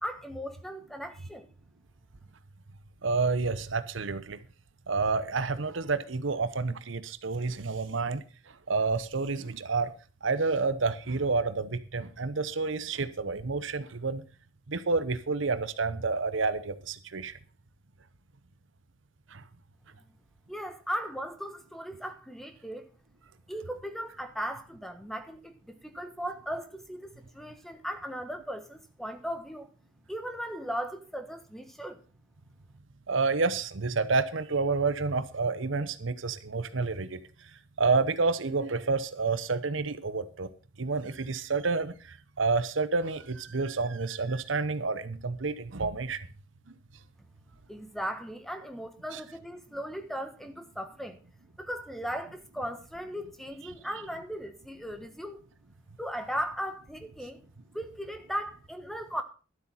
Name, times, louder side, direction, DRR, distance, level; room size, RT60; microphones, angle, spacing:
voice 1, 0.0-1.5 20.5-22.9 23.5-29.7 30.1-32.0 47.7-51.2 51.6-55.4 56.0-57.4 57.7-59.2, equal, ahead, 1.3 m, -37 dB
voice 2, 3.0-4.4 4.9-9.9 10.2-14.2 14.7-17.4 19.3-19.4 33.1-37.5 37.8-40.5 40.8-46.3 49.1-49.2, right 4 dB, 70° right, 0.9 m, -29 dB
12.0 x 8.2 x 5.7 m
head